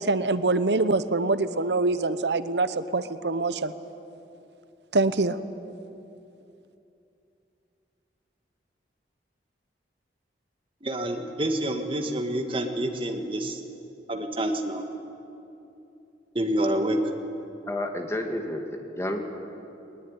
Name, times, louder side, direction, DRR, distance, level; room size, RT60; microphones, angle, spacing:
voice 1, 0.0-3.7 4.9-5.4, right 3 dB, 75° right, 13 dB, 0.9 m, -24 dB
voice 2, 10.8-13.6 14.1-14.8 16.3-17.0, right 1 dB, 30° right, 4 dB, 2.0 m, -28 dB
voice 3, 17.7-19.2, left 1 dB, 15° left, 3 dB, 2.2 m, -30 dB
21.0 x 20.0 x 10.0 m, 2.8 s
head